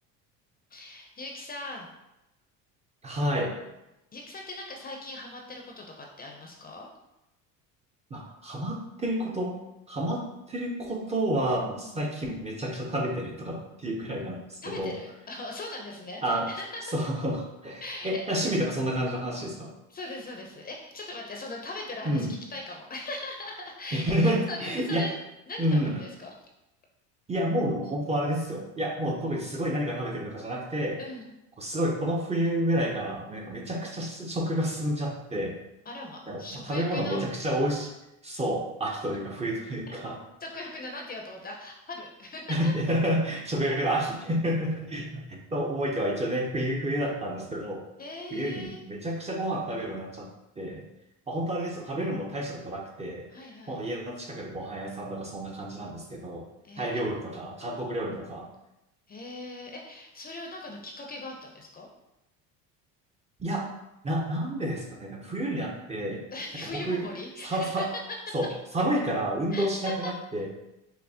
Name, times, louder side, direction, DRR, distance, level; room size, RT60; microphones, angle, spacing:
voice 1, 0.7-1.9 4.1-6.9 11.8-12.0 14.6-16.8 17.8-18.4 19.9-25.2 25.5-26.3 31.0-31.3 35.9-37.2 39.9-40.0 40.4-42.7 48.0-48.8 53.3-53.8 56.6-57.0 59.1-61.9 66.3-68.3 69.5-70.1, left 2 dB, 25° left, 1 dB, 0.6 m, -40 dB
voice 2, 3.0-3.5 8.1-9.6 9.9-15.0 16.2-16.5 16.9-19.7 22.1-22.3 23.9-25.1 25.6-26.0 27.3-31.0 31.6-35.6 36.3-37.9 38.2-40.2 42.5-47.8 48.3-50.3 50.6-50.8 51.3-53.3 53.7-56.5 56.8-58.5 63.4-63.7 64.0-66.2 66.7-67.1 67.4-67.9 68.3-68.5 68.7-70.5, right 1 dB, 20° right, -1 dB, 0.6 m, -29 dB
5.6 x 2.0 x 2.7 m, 0.91 s
supercardioid pair, 100°, 35 cm